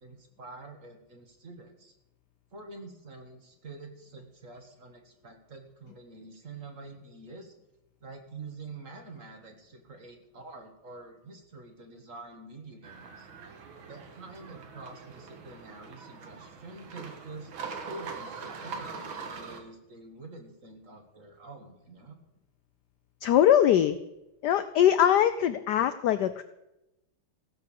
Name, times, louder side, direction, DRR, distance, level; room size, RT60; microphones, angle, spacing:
voice 1, 0.0-1.9 2.5-7.5 8.0-13.3 13.8-22.2, right 3 dB, 40° right, 4 dB, 1.7 m, -47 dB
sound 1, 12.8-19.6, right 5 dB, 70° right, 2.2 m, -42 dB
voice 2, 23.2-24.0 24.4-26.4, left 10 dB, 75° left, 12 dB, 0.9 m, -22 dB
16.5 x 6.9 x 7.0 m, 0.92 s
omnidirectional pair, 2.3 m